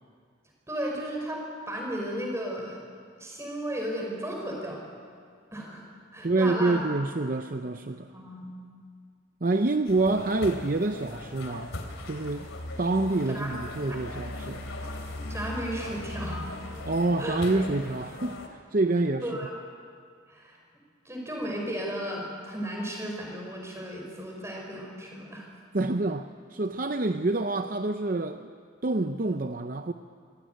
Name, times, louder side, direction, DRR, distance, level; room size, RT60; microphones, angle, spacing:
voice 1, 0.7-2.8 3.2-4.8 5.5-5.8 6.1-6.9 8.1-8.5 13.3-13.5 15.3-16.6 17.2-17.4 19.2-19.5 20.3-20.6 21.1-25.5, equal, 15° right, 0 dB, 5.2 m, -34 dB
voice 2, 6.2-8.1 9.4-11.7 12.1-12.5 12.8-14.6 16.9-19.3 25.7-28.5 28.8-29.9, right 2 dB, 45° right, 8 dB, 0.6 m, -27 dB
sound 1, 9.9-18.5, left 1 dB, 90° left, 3.0 m, -38 dB
25.0 x 16.5 x 9.3 m, 2.1 s
head